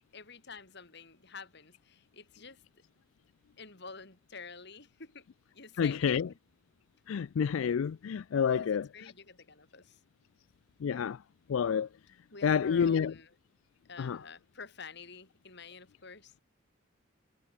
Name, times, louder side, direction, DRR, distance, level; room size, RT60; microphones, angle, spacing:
voice 1, 0.0-2.6 3.6-5.3 5.5-6.2 8.4-10.0 12.3-13.3 13.9-16.4, left 4 dB, 55° left, 5.1 m, -49 dB
voice 2, 5.8-6.3 7.1-9.1 10.8-11.2 11.5-11.9 12.4-13.1 14.0-14.2, left 7 dB, 90° left, 0.4 m, -29 dB
head